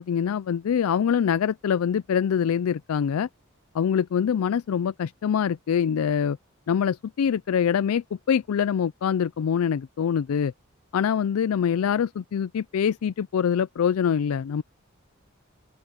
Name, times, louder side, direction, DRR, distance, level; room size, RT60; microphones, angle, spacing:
voice 1, 0.0-3.3 3.7-6.4 6.7-10.5 10.9-14.6, left 7 dB, 80° left, 0.4 m, -24 dB
open air
head